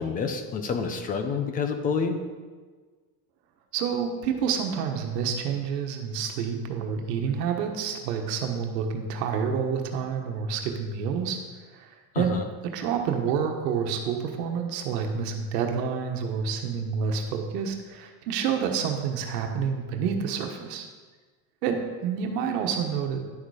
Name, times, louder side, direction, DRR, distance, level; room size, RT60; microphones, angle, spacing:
voice 1, 0.0-2.2 12.1-12.4, left 5 dB, 20° left, 7 dB, 0.4 m, -28 dB
voice 2, 3.7-11.4 11.7-12.4 12.7-20.9 21.6-23.2, right 6 dB, 80° right, 3 dB, 1.3 m, -28 dB
10.5 x 6.6 x 4.8 m, 1.4 s
cardioid pair, 160°, 48 cm